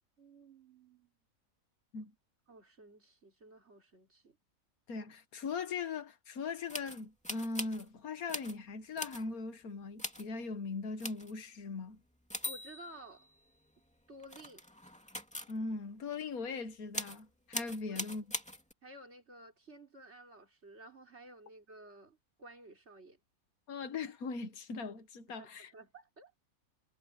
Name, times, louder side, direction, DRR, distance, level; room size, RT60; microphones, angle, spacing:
voice 1, 0.2-1.1 2.5-4.4 12.5-13.3 14.1-14.6 17.9-18.0 18.8-23.2 25.3-26.3, right 1 dB, 50° right, 4.1 m, -54 dB
voice 2, 4.9-12.0 15.5-18.3 23.7-25.7, left 4 dB, 85° left, 1.8 m, -40 dB
sound 1, 6.7-7.9 8.3-8.6 9.0-9.2 10.0-10.3 11.0-11.3 12.3-13.7 14.2-15.5 16.9-17.2 17.5-18.7, left 1 dB, 5° left, 2.5 m, -41 dB
omnidirectional pair, 1.5 m